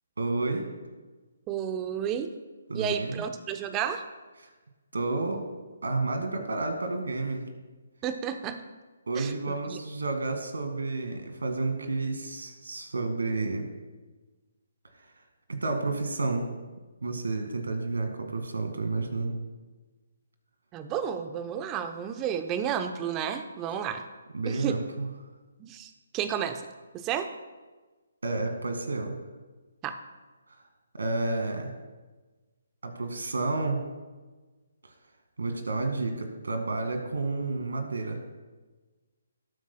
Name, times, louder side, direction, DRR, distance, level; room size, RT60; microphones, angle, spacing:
voice 1, 0.2-0.7 2.7-3.2 4.4-4.5 4.9-5.4 5.8-7.5 9.1-13.7 15.0-15.1 15.5-16.5 17.0-19.3 24.3-25.1 28.2-29.1 30.9-31.7 32.8-33.8 35.4-38.2, right 3 dB, 75° right, 5 dB, 2.0 m, -30 dB
voice 2, 1.5-2.3 2.7-4.0 8.0-8.6 9.2-9.3 9.7-9.8 20.7-24.0 24.4-24.8 25.6-26.6 26.9-27.3 29.8-30.0, right 8 dB, 20° right, 8 dB, 0.8 m, -31 dB
19.0 x 8.3 x 2.3 m, 1.3 s
figure-of-eight pair, 140°, 0 cm